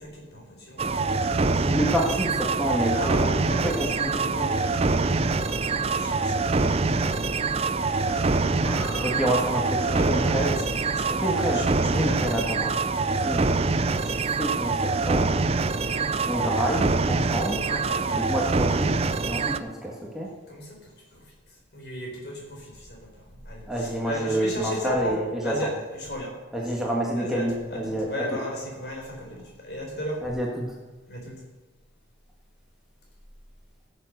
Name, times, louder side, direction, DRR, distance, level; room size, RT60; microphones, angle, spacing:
voice 1, 0.0-1.7 2.9-6.6 6.8-9.1 9.8-12.4 13.2-13.4 15.8-16.1 17.6-18.3 20.5-21.3 21.7-23.1 23.4-25.2 25.4-26.8 27.2-30.2 31.1-31.3, equal, 55° left, -1 dB, 4.2 m, -37 dB
sound 1, 0.7-12.4, equal, 20° left, 1.6 m, -43 dB
sound 2, 0.8-19.6, right 3 dB, 30° right, 0.4 m, -25 dB
voice 2, 1.6-3.3 3.6-4.5 9.0-10.6 11.1-12.7 13.1-13.5 14.0-15.3 15.9-17.6 18.1-19.0 19.3-20.3 23.7-25.7 26.5-28.4 30.2-30.7, right 1 dB, ahead, -3 dB, 1.8 m, -28 dB
17.0 x 7.4 x 6.7 m, 1.2 s
head